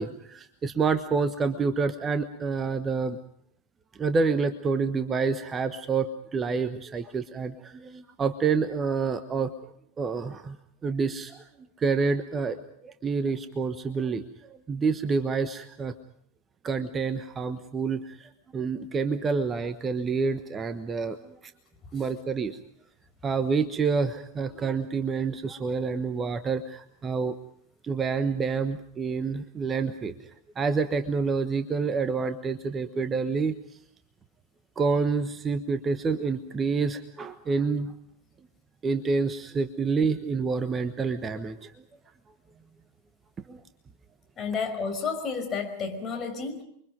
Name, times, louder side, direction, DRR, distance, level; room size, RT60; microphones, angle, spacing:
voice 1, 0.0-3.2 4.0-10.6 10.8-11.5 11.8-15.9 16.6-21.5 21.9-22.6 23.2-27.4 27.8-30.3 30.5-33.5 34.8-37.9 38.8-41.7 43.5-43.6, right 4 dB, 20° right, 10 dB, 1.2 m, -28 dB
voice 2, 44.4-46.6, left 5 dB, 25° left, 4 dB, 5.4 m, -31 dB
30.0 x 23.5 x 5.2 m, 0.69 s
figure-of-eight pair, 90°, 0 cm